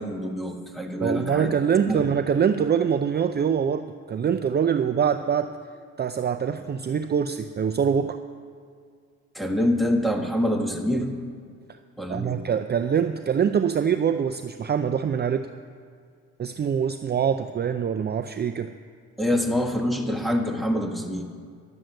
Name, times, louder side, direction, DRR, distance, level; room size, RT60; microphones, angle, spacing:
voice 1, 0.0-1.5 1.9-2.0 9.3-11.1 12.0-12.4 19.2-21.2, left 1 dB, ahead, 2 dB, 1.5 m, -25 dB
voice 2, 1.0-5.6 6.0-8.2 12.1-15.5 16.4-18.7, right 7 dB, 35° right, 9 dB, 0.5 m, -24 dB
11.5 x 7.9 x 7.7 m, 2.1 s
cardioid pair, 90°, 30 cm